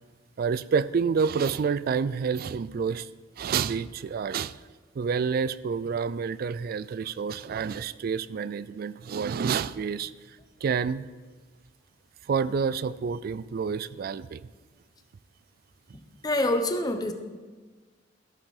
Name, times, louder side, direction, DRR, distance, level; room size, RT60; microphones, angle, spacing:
voice 1, 0.4-3.1 3.4-4.6 5.0-10.1 10.6-11.1 12.3-14.5, right 6 dB, 50° right, 17 dB, 0.3 m, -28 dB
voice 2, 15.9-17.1, left 1 dB, 20° left, 7 dB, 0.8 m, -27 dB
13.0 x 6.6 x 4.8 m, 1.4 s
head